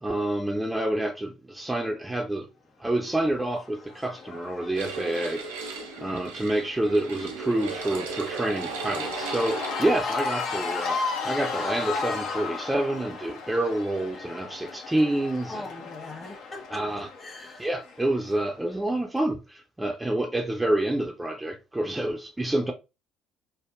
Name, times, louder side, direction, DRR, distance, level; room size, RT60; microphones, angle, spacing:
voice 1, 0.0-2.5 2.8-15.7 16.7-17.1 17.6-22.7, right 1 dB, 10° right, 0.5 m, -28 dB
Cheering / Crowd, 3.2-18.5, left 4 dB, 60° left, 0.6 m, -35 dB
sound 1, 4.7-9.9, right 5 dB, 85° right, 0.5 m, -36 dB
voice 2, 15.5-16.8 17.2-17.6, left 2 dB, 25° left, 0.9 m, -40 dB
3.5 x 2.0 x 2.3 m
hypercardioid pair, 60°, 0 cm